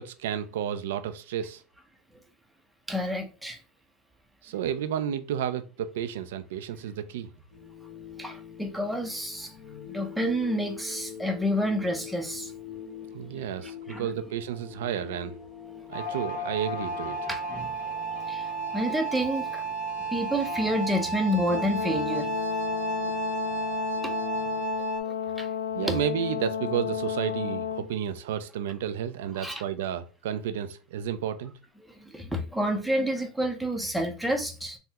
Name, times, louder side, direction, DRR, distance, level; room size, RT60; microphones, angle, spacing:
voice 1, 0.0-1.6 4.4-7.3 13.1-15.3 15.9-17.2 23.0-23.1 25.7-31.5, right 9 dB, 80° right, 0.3 m, -31 dB
voice 2, 2.9-3.6 8.2-9.6 9.9-12.5 13.6-14.1 17.3-17.7 18.3-19.7 20.1-22.3 25.1-25.5 25.8-26.0 29.3-29.6 31.8-34.8, equal, 5° right, 0.6 m, -29 dB
sound 1, 7.5-24.6, left 7 dB, 50° left, 1.2 m, -45 dB
sound 2, 15.9-25.0, right 5 dB, 70° left, 0.9 m, -33 dB
Brass instrument, 21.5-27.9, left 9 dB, 85° left, 0.3 m, -32 dB
3.5 x 2.1 x 2.8 m
supercardioid pair, 110°, 0 cm